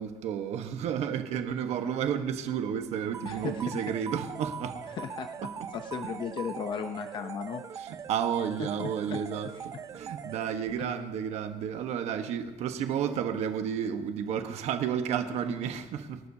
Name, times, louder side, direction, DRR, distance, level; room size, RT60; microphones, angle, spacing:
voice 1, 0.0-4.8 5.4-5.7 7.7-16.2, right 8 dB, 55° right, 7 dB, 1.2 m, -32 dB
sound 1, 3.1-10.9, right 7 dB, 25° right, 0.4 m, -41 dB
voice 2, 3.2-3.8 4.9-7.6 8.6-9.2, left 7 dB, 35° left, 7 dB, 0.7 m, -36 dB
26.0 x 12.0 x 2.8 m, 1.2 s
cardioid pair, 170°, 13 cm